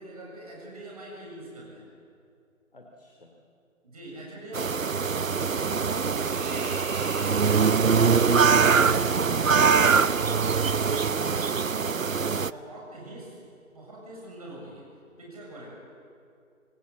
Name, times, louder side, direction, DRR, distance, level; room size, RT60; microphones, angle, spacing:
voice 1, 0.0-1.9 3.8-10.0 10.4-13.4 13.7-14.8 15.2-15.7, right 1 dB, 25° right, -3 dB, 7.4 m, -44 dB
voice 2, 2.7-3.4, left 2 dB, 40° left, 1 dB, 2.7 m, -51 dB
sound 1, 4.5-12.5, right 5 dB, 70° right, 0.8 m, -23 dB
sound 2, 4.8-13.5 13.8-14.0, left 4 dB, 70° left, 7.2 m, -53 dB
Water / Bathtub (filling or washing), 5.5-11.5, right 2 dB, 10° right, 3.2 m, -44 dB
27.5 x 20.5 x 8.5 m, 2.5 s
figure-of-eight pair, 170°, 42 cm